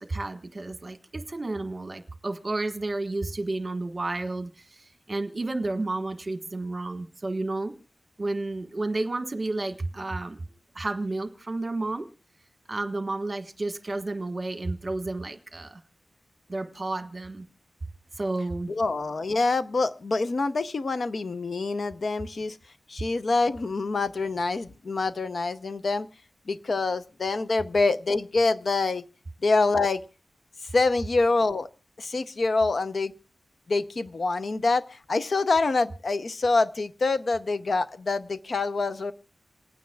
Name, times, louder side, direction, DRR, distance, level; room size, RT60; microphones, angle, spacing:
voice 1, 0.0-7.7 8.2-10.4 10.7-12.1 12.7-15.8 16.5-17.4 18.2-18.7, right 2 dB, 30° right, 7 dB, 1.4 m, -31 dB
voice 2, 18.7-22.6 22.9-26.1 26.5-29.0 29.4-30.0 30.7-31.7 32.0-33.1 33.7-39.1, left 3 dB, 55° left, 12 dB, 0.7 m, -26 dB
27.5 x 9.4 x 2.3 m, 0.34 s
wide cardioid pair, 105°, 0 cm